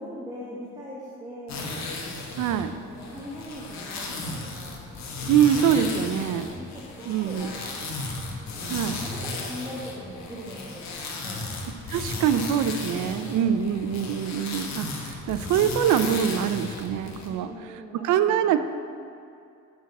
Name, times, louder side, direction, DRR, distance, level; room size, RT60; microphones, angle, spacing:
voice 1, 0.0-1.7 2.6-4.9 6.0-7.8 8.4-11.6 12.9-13.7 17.3-18.5, equal, 15° right, -7 dB, 1.6 m, -41 dB
sound 1, 1.5-17.3, left 2 dB, 65° left, 1.4 m, -35 dB
voice 2, 2.4-2.7 5.3-6.5 7.1-7.5 8.7-9.0 11.9-17.5 18.0-18.6, right 9 dB, 90° right, 11 dB, 0.5 m, -24 dB
8.7 x 7.4 x 4.1 m, 2.4 s
cardioid pair, 100°, 29 cm